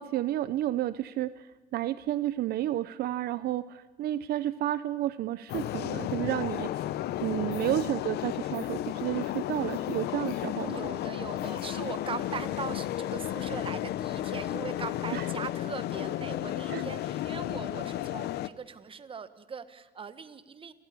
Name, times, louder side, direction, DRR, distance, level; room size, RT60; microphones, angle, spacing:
voice 1, 0.0-1.5 1.7-6.9 7.2-10.8 15.1-15.3 16.7-16.8, right 13 dB, 65° right, 14 dB, 0.6 m, -31 dB
sound 1, 5.5-18.5, left 13 dB, 75° left, 0.8 m, -33 dB
voice 2, 7.5-8.3 10.7-20.7, right 6 dB, 30° right, 11 dB, 1.4 m, -40 dB
29.5 x 13.0 x 8.4 m, 1.3 s
cardioid pair, 110°, 17 cm